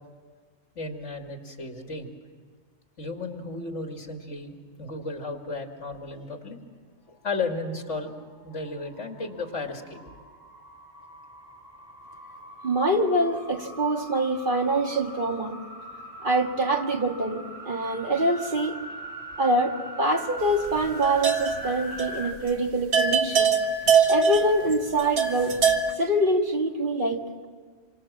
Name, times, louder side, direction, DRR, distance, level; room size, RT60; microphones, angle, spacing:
voice 1, 0.8-2.1 3.0-6.6 7.1-8.2 8.4-10.0, left 3 dB, 75° left, 3 dB, 2.7 m, -34 dB
sound 1, 7.9-22.3, right 1 dB, 20° right, 4.0 m, -42 dB
voice 2, 12.6-15.6 16.2-18.8 19.4-23.5 24.1-25.6 26.0-27.5, right 1 dB, 45° right, 2 dB, 2.1 m, -25 dB
sound 2, 20.7-21.7 22.0-22.2 22.5-22.6 22.9-25.9, right 6 dB, 60° right, 1.7 m, -23 dB
27.0 x 25.5 x 7.5 m, 1.5 s
omnidirectional pair, 1.2 m